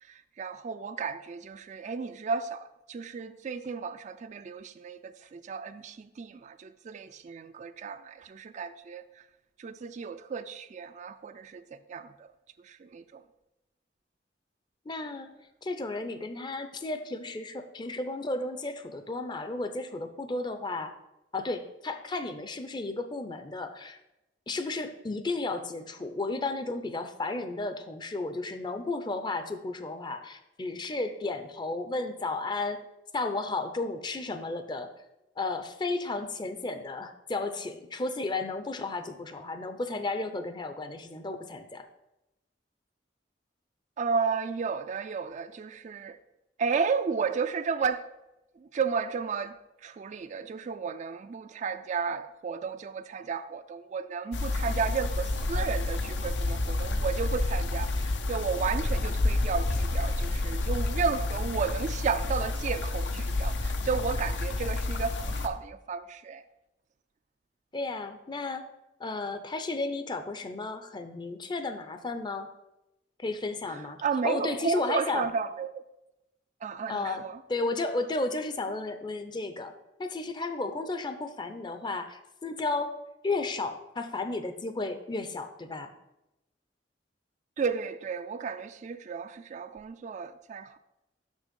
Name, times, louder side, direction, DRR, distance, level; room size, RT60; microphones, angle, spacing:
voice 1, 0.0-9.3 9.6-12.3 12.6-13.2 44.0-46.2 46.6-48.1 48.6-66.4 74.0-75.7 76.6-77.4 87.6-90.8, right 5 dB, 40° right, 0.3 m, -33 dB
voice 2, 14.9-15.3 15.6-20.9 21.3-24.0 24.5-32.8 33.1-34.9 35.4-41.9 67.7-68.6 69.0-72.5 73.2-74.0 74.2-75.3 76.9-77.2 77.5-79.7 80.0-83.0 83.2-85.9, left 3 dB, 25° left, 0.5 m, -33 dB
sound 1, 54.3-65.5, left 2 dB, 75° left, 0.7 m, -29 dB
6.3 x 6.2 x 5.2 m
head